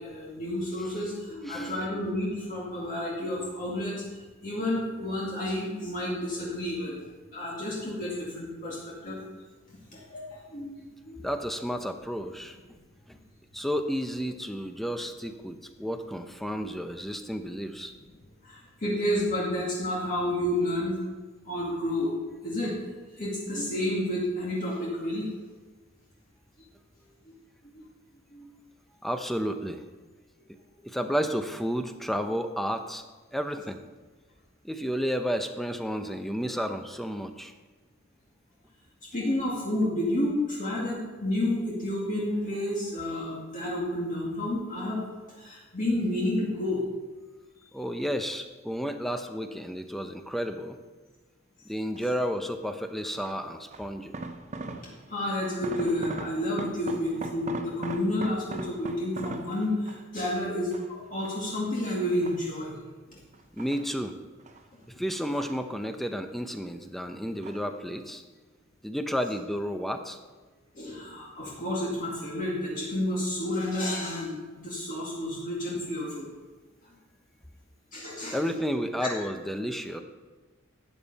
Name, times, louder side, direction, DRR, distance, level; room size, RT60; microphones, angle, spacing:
voice 1, 0.0-6.9 7.3-9.2 9.7-11.3 18.4-21.0 21.5-22.1 22.4-22.8 23.1-25.3 27.6-27.9 28.3-28.5 39.1-45.0 45.4-46.8 54.6-54.8 55.1-62.8 63.1-63.2 64.9-65.0 70.8-76.3 77.9-78.4 79.0-79.1, left 1 dB, 40° left, -5 dB, 2.0 m, -30 dB
voice 2, 11.2-12.6 13.1-13.2 13.5-17.9 29.0-29.8 30.9-33.0 33.3-33.8 34.6-37.5 47.7-50.8 51.7-54.1 63.5-64.1 64.9-68.2 68.8-70.2 78.3-80.0, equal, ahead, 7 dB, 0.6 m, -31 dB
sound 1, 52.0-52.3 53.2-55.1 55.4-60.2 60.7-61.6 62.0-62.8 63.3-64.7 65.0-66.1 66.4-67.0 67.4-67.8 68.1-68.2, right 3 dB, 35° right, 0.7 m, -40 dB
12.5 x 8.8 x 4.1 m, 1.3 s
head